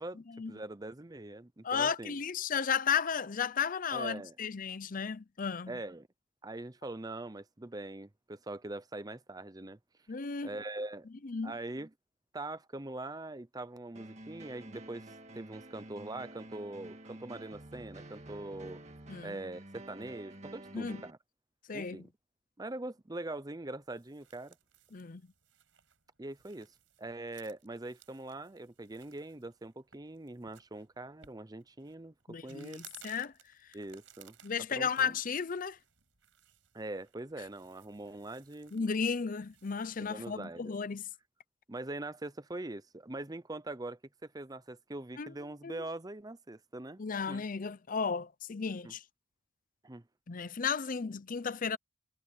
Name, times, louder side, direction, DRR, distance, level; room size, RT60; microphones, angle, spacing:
voice 1, 0.5-2.2 3.9-4.4 5.7-6.1 6.4-9.8 10.4-11.1 11.4-11.9 12.3-18.8 19.2-21.2 21.7-22.1 22.6-24.6 26.2-32.1 32.4-32.8 33.7-34.4 34.7-35.2 36.7-38.7 40.0-40.8 41.7-47.0 47.3-47.4 48.8-48.9 49.8-50.0, right 2 dB, 20° right, 0.7 m, -42 dB
voice 2, 1.6-5.7 10.1-10.5 11.2-11.5 19.1-19.3 20.7-21.0 21.7-22.0 24.9-25.2 32.3-33.3 34.4-35.8 38.7-41.0 45.2-45.3 45.6-45.8 47.0-49.0 50.3-51.8, left 6 dB, 40° left, 0.6 m, -34 dB
sound 1, 13.9-21.1, right 1 dB, 35° right, 1.9 m, -49 dB
sound 2, 23.7-40.4, right 10 dB, 70° right, 5.5 m, -61 dB
head